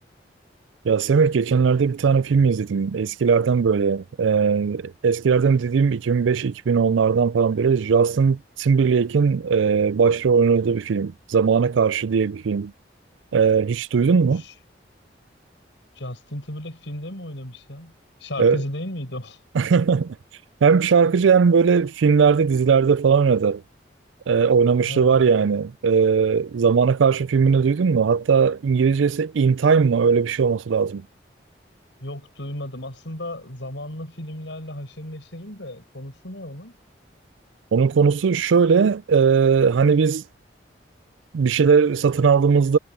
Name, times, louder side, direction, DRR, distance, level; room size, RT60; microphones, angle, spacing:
voice 1, 0.8-12.7 13.3-14.4 18.4-18.6 19.5-20.2 20.6-23.6 24.3-31.0 37.7-40.2 41.3-42.8, right 5 dB, 85° right, 0.4 m, -19 dB
voice 2, 14.1-14.5 16.0-19.4 24.9-25.3 32.0-36.7, left 1 dB, 75° left, 5.3 m, -35 dB
head